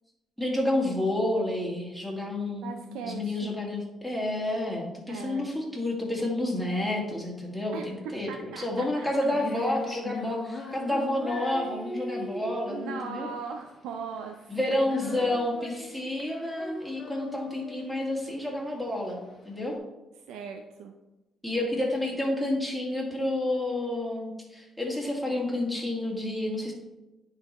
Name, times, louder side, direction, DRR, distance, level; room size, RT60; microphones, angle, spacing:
voice 1, 0.4-13.3 14.5-19.2 19.5-19.7 21.4-26.7, left 1 dB, 5° right, -2 dB, 2.4 m, -30 dB
voice 2, 2.6-3.5 5.1-5.5 7.7-9.1 12.7-14.5 20.3-20.9, right 6 dB, 90° right, 4 dB, 0.5 m, -39 dB
Female singing, 8.8-19.7, left 2 dB, 45° left, 1.2 m, -40 dB
9.5 x 4.0 x 4.3 m, 1.0 s
cardioid pair, 90°, 0 cm